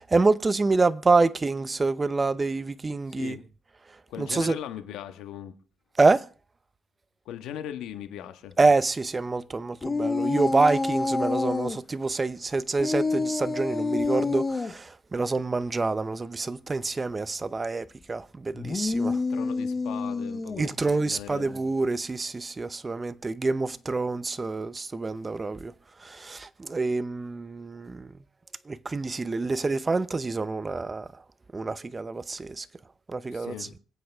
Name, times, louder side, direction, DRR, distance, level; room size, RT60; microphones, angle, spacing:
voice 1, 0.0-3.4 4.2-4.6 6.0-6.3 8.6-19.2 20.6-25.7 26.0-28.1 28.7-31.1 31.5-32.7 33.1-33.7, right 3 dB, 25° right, 0.7 m, -26 dB
voice 2, 4.1-5.5 7.2-8.5 19.1-21.5 33.3-33.7, left 10 dB, 90° left, 1.4 m, -39 dB
sound 1, 9.8-11.8 12.8-14.7 18.5-20.8, left 3 dB, 30° left, 1.1 m, -28 dB
26.0 x 8.7 x 3.5 m
cardioid pair, 90°, 0 cm